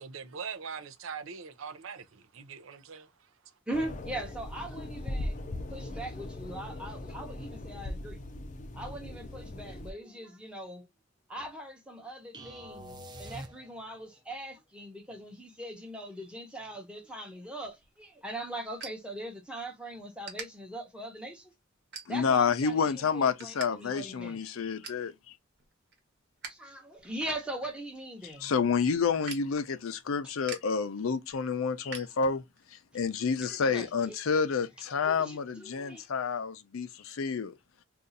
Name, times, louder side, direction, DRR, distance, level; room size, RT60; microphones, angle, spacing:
voice 1, 0.0-3.1, right 6 dB, 75° right, 0.5 m, -42 dB
sound 1, 3.7-9.9, left 1 dB, 40° left, 0.5 m, -39 dB
voice 2, 3.7-5.4 5.7-8.2 8.7-10.9 11.3-21.5 22.1-24.4 26.5-28.5 33.4-34.2 35.0-36.0, right 1 dB, 5° right, 0.8 m, -41 dB
sound 2, 12.3-14.1, right 1 dB, 20° right, 0.5 m, -45 dB
sound 3, 17.7-19.7 20.2-20.5 21.0-21.3 21.9-22.5 22.9-23.7 24.0-24.1 24.4-25.1 25.5-26.6 26.9-32.7, right 5 dB, 55° right, 1.1 m, -46 dB
voice 3, 22.1-25.3 28.2-32.4 32.7-37.5, left 5 dB, 90° left, 0.5 m, -29 dB
2.7 x 2.4 x 3.8 m
head